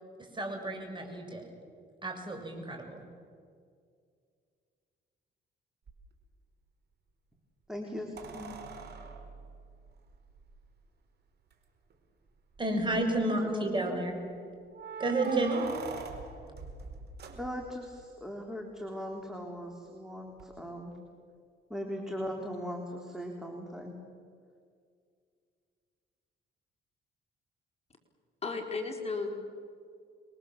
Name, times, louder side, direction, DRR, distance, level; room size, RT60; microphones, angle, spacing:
voice 1, 0.3-1.4 2.0-3.0 12.6-14.2 15.0-15.6, right 2 dB, 25° right, 3 dB, 6.6 m, -31 dB
sound 1, 5.9-6.0 8.2-10.6 11.5-11.6 11.9-12.0 12.6-13.0 14.7-17.9 20.4-20.5, right 5 dB, 55° right, 4.5 m, -43 dB
voice 2, 7.7-8.6 13.1-14.0 17.3-20.9 21.7-24.0, equal, ahead, 1 dB, 3.7 m, -39 dB
voice 3, 28.4-29.3, left 4 dB, 30° left, 2 dB, 4.1 m, -34 dB
28.0 x 22.5 x 7.5 m, 2.2 s
cardioid pair, 90°, 20 cm